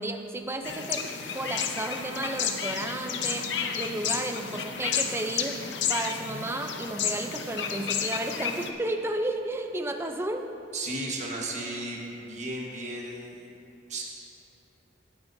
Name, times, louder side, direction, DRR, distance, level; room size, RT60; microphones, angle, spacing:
voice 1, 0.0-5.6 5.9-10.5, right 1 dB, 15° right, 5 dB, 0.5 m, -33 dB
sound 1, 0.6-8.7, left 7 dB, 75° left, 0.7 m, -31 dB
voice 2, 10.7-13.4 13.9-14.0, right 2 dB, 40° right, -2 dB, 1.4 m, -34 dB
17.0 x 9.2 x 2.7 m, 3.0 s
head